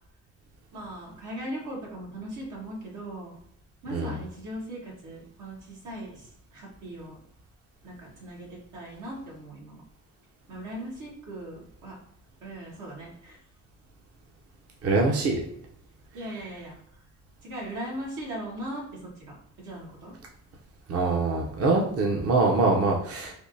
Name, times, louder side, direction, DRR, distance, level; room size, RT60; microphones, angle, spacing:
voice 1, 0.7-3.4 3.8-7.2 7.8-9.8 10.5-12.0 12.4-13.4 16.1-16.7 17.4-20.1, right 1 dB, 90° right, -3 dB, 1.3 m, -39 dB
voice 2, 14.8-15.4 20.9-23.3, right 3 dB, 50° right, 0 dB, 0.6 m, -24 dB
3.4 x 2.5 x 2.7 m, 0.71 s
cardioid pair, 90°, 30 cm